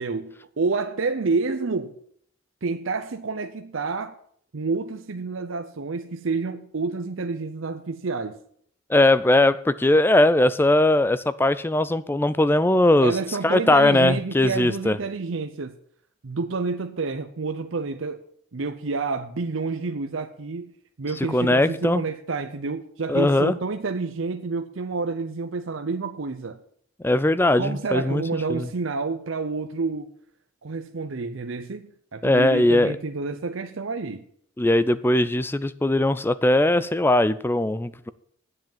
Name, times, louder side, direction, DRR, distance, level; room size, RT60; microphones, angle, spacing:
voice 1, 0.0-2.0 2.6-4.2 4.5-8.4 13.0-15.7 16.2-18.2 18.5-26.6 27.6-30.1 30.6-34.2, right 4 dB, 65° right, 0.6 m, -29 dB
voice 2, 8.9-13.1 13.4-15.0 21.3-22.0 23.1-23.6 27.0-28.2 28.5-28.7 32.2-33.0 34.6-38.1, left 1 dB, 10° left, 0.3 m, -20 dB
9.7 x 7.7 x 7.3 m
head